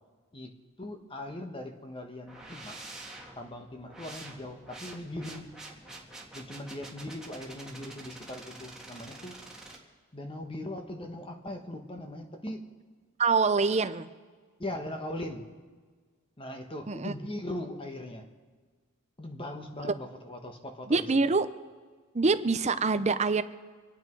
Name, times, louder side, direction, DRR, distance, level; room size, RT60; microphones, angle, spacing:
voice 1, 0.8-2.8 3.4-5.5 6.3-9.4 10.1-12.6 13.6-13.8 14.6-15.5 16.4-18.3 19.2-21.1, left 1 dB, 25° left, 5 dB, 1.4 m, -40 dB
sound 1, 2.3-9.8, right 2 dB, 5° right, 1.9 m, -47 dB
voice 2, 13.2-14.1 16.9-17.1 19.9-20.0 20.9-21.5 22.1-23.4, right 4 dB, 30° right, 12 dB, 0.6 m, -25 dB
27.0 x 9.3 x 4.6 m, 1.5 s
head